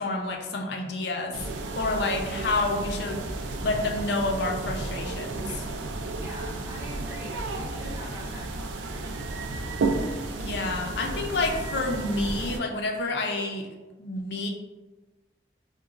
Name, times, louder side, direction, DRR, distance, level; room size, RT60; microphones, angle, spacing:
voice 1, 0.0-1.4 1.7-3.2 3.6-5.6 10.4-13.7 14.0-14.5, left 2 dB, 65° left, 2 dB, 0.4 m, -29 dB
sound 1, 1.3-12.6, right 3 dB, 85° right, 0.3 m, -32 dB
voice 2, 6.1-9.3, left 1 dB, 15° right, -5 dB, 0.5 m, -43 dB
3.8 x 2.2 x 2.4 m, 1.2 s
head